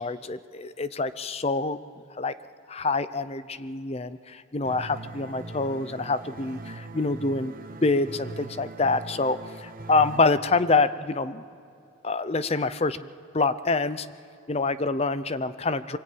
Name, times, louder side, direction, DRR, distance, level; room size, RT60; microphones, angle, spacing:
voice 1, 0.0-1.8 2.2-2.3 2.7-7.6 7.8-11.4 12.0-13.1 13.3-14.1 14.5-16.0, left 3 dB, 30° left, 14 dB, 0.6 m, -26 dB
sound 1, 4.7-10.2, right 2 dB, 45° right, 1.0 m, -41 dB
24.0 x 23.5 x 8.7 m, 2.5 s
head